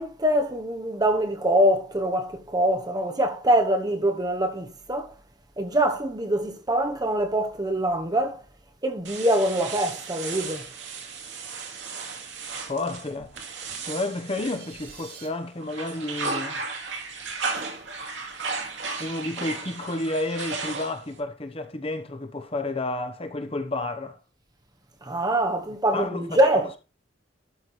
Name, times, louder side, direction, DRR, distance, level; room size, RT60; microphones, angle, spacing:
voice 1, 0.0-5.1 5.6-8.4 8.8-10.7 25.0-26.8, right 1 dB, 20° right, 1.1 m, -24 dB
sound 1, 9.0-15.2 15.6-21.2, right 4 dB, 75° right, 2.4 m, -35 dB
voice 2, 12.6-13.5 13.8-16.6 19.0-24.2 25.9-26.8, left 2 dB, 30° left, 1.0 m, -31 dB
sound 2, 14.1-15.3, right 6 dB, 55° right, 4.3 m, -47 dB
12.5 x 4.9 x 4.1 m
head